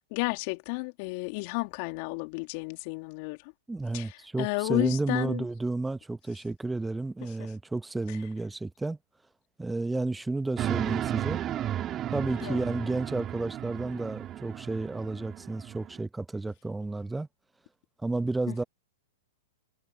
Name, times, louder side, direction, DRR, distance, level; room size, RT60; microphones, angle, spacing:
voice 1, 0.1-3.5 3.9-5.4 7.2-7.3 8.1-8.2 12.4-12.6 18.5-18.7, left 29 dB, 50° left, 2.8 m, -32 dB
voice 2, 3.7-9.0 9.6-11.4 12.1-17.3 18.0-18.6, right 2 dB, 5° right, 1.1 m, -31 dB
sound 1, 10.6-16.0, right 11 dB, 30° right, 2.8 m, -34 dB
hypercardioid pair, 105°, 0 cm